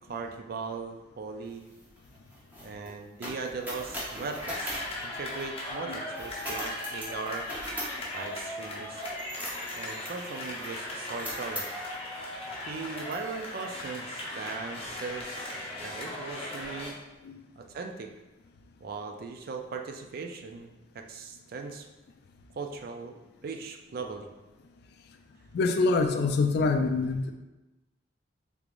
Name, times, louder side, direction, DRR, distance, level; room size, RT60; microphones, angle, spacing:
voice 1, 0.1-1.6 2.6-7.5 8.1-9.0 9.7-11.6 12.7-17.0 17.6-18.1 18.8-21.9 22.6-23.2 23.4-24.3, right 4 dB, 50° right, 4 dB, 0.3 m, -39 dB
sound 1, 1.5-5.8 6.1-12.0 12.6-12.7 13.1-13.7, equal, 10° right, 0.8 m, -41 dB
sound 2, 4.4-16.9, left 1 dB, 30° left, 0.7 m, -38 dB
voice 2, 25.5-27.3, left 3 dB, 55° left, 5 dB, 0.3 m, -25 dB
3.5 x 3.3 x 2.5 m, 1.1 s
head